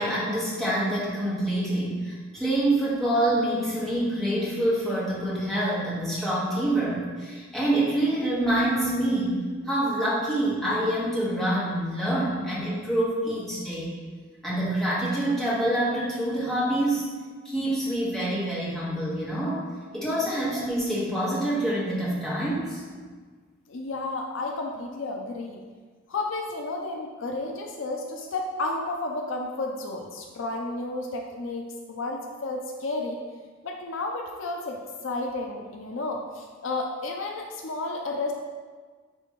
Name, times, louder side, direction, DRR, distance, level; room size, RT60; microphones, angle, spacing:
voice 1, 0.0-13.9 14.4-17.1 17.4-19.6 19.9-22.8, right 1 dB, ahead, -8 dB, 1.5 m, -26 dB
voice 2, 23.7-25.6 26.1-33.2 33.6-38.3, left 2 dB, 60° left, 1 dB, 0.5 m, -32 dB
9.7 x 3.3 x 3.1 m, 1.5 s
head